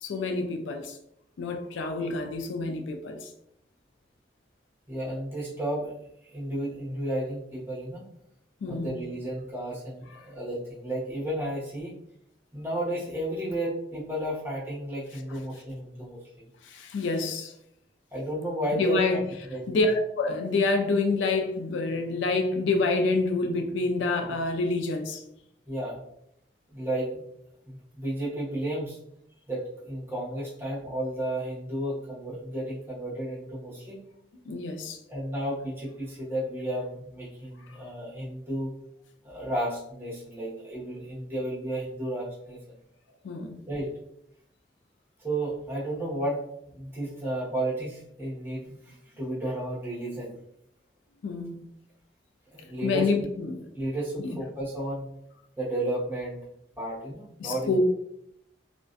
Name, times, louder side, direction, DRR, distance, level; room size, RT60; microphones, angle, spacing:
voice 1, 0.0-1.0 1.4-3.3 8.6-9.0 16.6-17.5 18.7-19.2 19.7-25.2 34.5-35.0 43.2-43.6 51.2-51.7 52.8-53.6 54.2-54.4 57.4-57.8, left 3 dB, 85° left, 0.4 m, -27 dB
voice 2, 4.9-5.9 6.3-8.1 8.7-11.9 12.5-16.2 18.1-19.2 19.5-19.8 25.7-26.0 26.7-27.2 27.7-29.0 29.5-34.0 35.1-38.7 39.2-42.6 43.7-43.9 45.2-46.4 46.7-50.4 52.5-53.1 53.7-55.1 55.6-56.4 56.8-57.8, right 1 dB, 10° right, 0.9 m, -32 dB
2.4 x 2.1 x 2.4 m
head